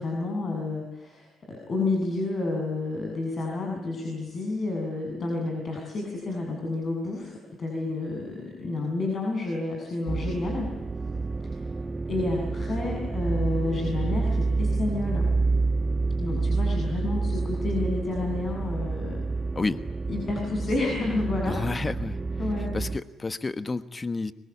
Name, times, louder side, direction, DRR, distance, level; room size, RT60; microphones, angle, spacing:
voice 1, 0.0-7.3 7.6-10.7 11.4-11.5 12.1-15.3 16.2-19.2 20.1-21.7 22.4-22.7, left 2 dB, 45° left, 1 dB, 7.4 m, -30 dB
sound 1, 10.1-23.0, right 3 dB, 25° right, 1.0 m, -28 dB
voice 2, 21.4-22.2 22.6-24.3, left 3 dB, 25° left, 12 dB, 1.2 m, -30 dB
25.5 x 23.0 x 8.5 m, 1.0 s
cardioid pair, 90°, 0 cm